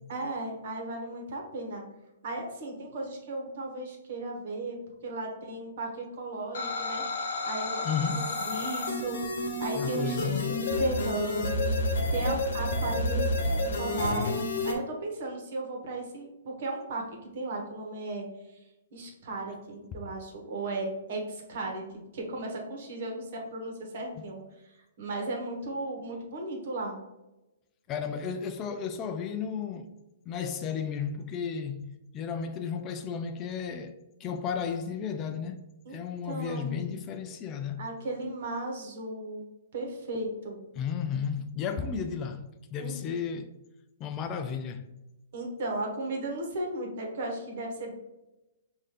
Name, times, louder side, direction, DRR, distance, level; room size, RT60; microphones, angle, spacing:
voice 1, 0.1-1.8 2.2-4.8 5.0-7.0 7.4-9.2 9.6-18.6 18.9-24.4 25.0-27.0 35.8-36.0 36.3-36.9 37.8-39.4 39.7-40.6 42.8-42.9 45.3-47.9, right 2 dB, 55° right, 1.3 m, -36 dB
sound 1, 6.5-14.7, left 1 dB, 65° left, 0.9 m, -30 dB
voice 2, 7.8-8.3 9.8-10.5 27.9-29.9 30.3-35.6 35.9-37.8 40.8-43.5 44.0-44.9, left 6 dB, 30° left, 0.4 m, -33 dB
5.4 x 2.6 x 3.3 m
hypercardioid pair, 125°, 0 cm